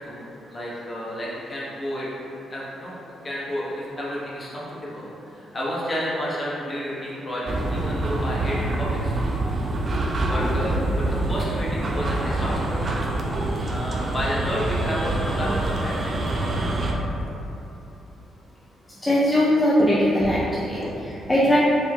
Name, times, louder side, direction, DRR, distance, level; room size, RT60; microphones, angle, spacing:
voice 1, 0.0-2.1 2.5-3.0 3.2-9.3 10.3-12.8 13.6-16.7 17.1-17.2 19.8-19.9 20.2-20.4 20.7-21.1, equal, 35° left, -6 dB, 1.1 m, -31 dB
sound 1, 7.5-16.9, right 2 dB, 50° right, 0.4 m, -26 dB
voice 2, 19.0-19.8 20.1-20.8 21.3-21.6, left 1 dB, 20° left, -7 dB, 0.5 m, -20 dB
4.4 x 2.7 x 2.3 m, 2.8 s
supercardioid pair, 50°, 0 cm